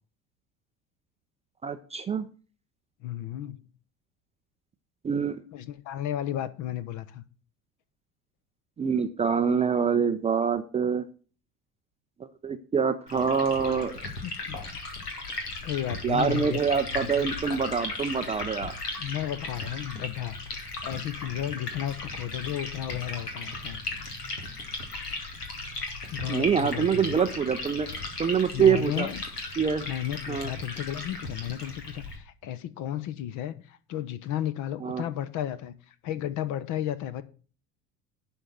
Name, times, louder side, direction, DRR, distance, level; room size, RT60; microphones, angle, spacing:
voice 1, 1.6-2.3 5.0-5.4 8.8-11.0 12.2-14.0 16.0-18.7 26.3-27.9 28.2-29.1 29.6-29.8 30.3-30.5 34.8-35.0, right 6 dB, 15° right, 0.5 m, -25 dB
voice 2, 3.0-3.6 5.5-7.2 14.2-14.6 15.6-16.6 16.9-17.3 19.0-20.4 20.8-23.8 26.1-27.2 28.5-29.2 29.9-37.2, left 11 dB, 40° left, 0.9 m, -33 dB
Liquid, 13.1-32.2, left 3 dB, 75° left, 2.3 m, -37 dB
11.5 x 4.4 x 7.8 m
figure-of-eight pair, 70°, 47 cm